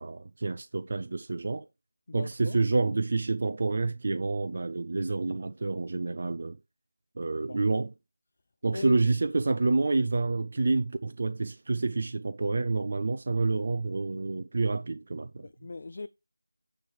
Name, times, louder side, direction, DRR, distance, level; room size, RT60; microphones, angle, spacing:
voice 1, 0.0-1.7 2.1-6.6 7.2-7.9 8.6-15.5, right 3 dB, 40° right, 0.4 m, -28 dB
voice 2, 2.1-2.6 7.4-7.6 8.7-9.0 15.6-16.1, left 3 dB, 40° left, 0.3 m, -38 dB
9.5 x 3.2 x 4.8 m
figure-of-eight pair, 175°, 0 cm